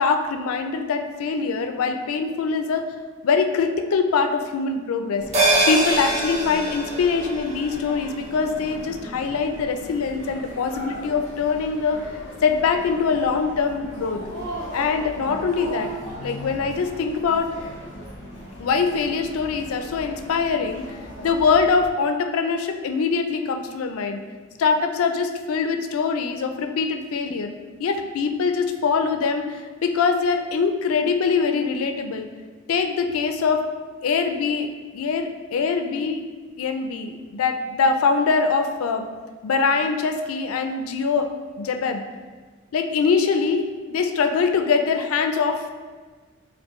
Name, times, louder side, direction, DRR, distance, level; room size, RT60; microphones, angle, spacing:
voice 1, 0.0-2.8 3.2-5.2 5.7-12.0 12.4-14.2 14.7-15.9 16.2-17.5 18.6-20.8 21.2-24.2 24.6-27.5 27.8-32.3 32.7-33.7 34.0-36.2 36.6-39.1 39.4-41.3 41.6-42.0 42.7-45.7, left 5 dB, 85° left, 6 dB, 0.4 m, -23 dB
sound 1, 5.2-21.9, equal, 35° left, 1.1 m, -38 dB
sound 2, 5.3-10.1 10.4-10.5, right 2 dB, 35° right, 0.7 m, -25 dB
4.3 x 2.7 x 3.0 m, 1.4 s
head